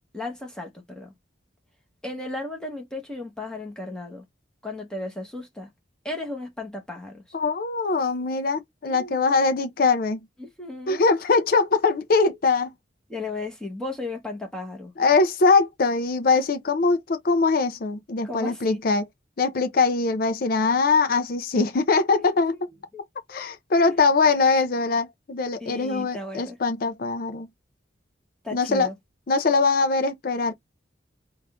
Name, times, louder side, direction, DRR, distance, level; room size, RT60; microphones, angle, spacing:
voice 1, 0.1-1.1 2.0-4.2 4.6-5.7 6.0-7.2 8.9-9.2 10.4-11.0 13.1-14.9 16.4-16.5 18.2-18.8 22.1-22.2 22.9-23.1 25.6-26.6 28.4-28.9, left 2 dB, 5° left, 1.0 m, -35 dB
voice 2, 7.3-10.2 10.9-12.7 15.0-19.0 19.4-22.5 23.3-27.5 28.5-28.9 29.3-30.5, left 4 dB, 50° left, 0.5 m, -22 dB
3.6 x 2.4 x 3.5 m
head